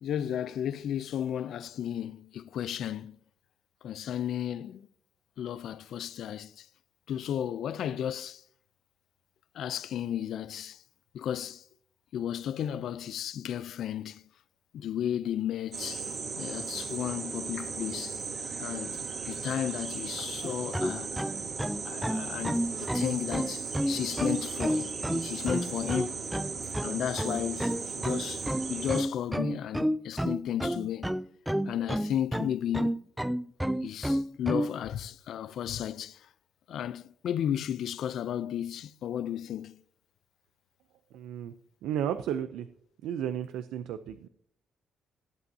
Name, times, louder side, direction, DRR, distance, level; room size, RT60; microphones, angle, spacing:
voice 1, 0.0-3.2 3.8-4.9 5.4-6.7 7.1-8.4 9.5-10.8 11.1-11.6 12.1-14.2 14.7-16.1 16.3-18.2 18.6-19.0 19.3-21.2 21.8-26.1 26.8-31.1 31.6-33.0 33.8-36.2 36.7-39.8, left 10 dB, 70° left, 0.5 m, -34 dB
sound 1, 15.7-29.0, right 5 dB, 55° right, 2.7 m, -37 dB
sound 2, 20.4-34.7, equal, 5° right, 0.4 m, -30 dB
voice 2, 41.1-41.5 41.8-42.7 43.0-44.3, right 9 dB, 90° right, 0.5 m, -33 dB
16.5 x 8.0 x 2.8 m
cardioid pair, 90°, 0 cm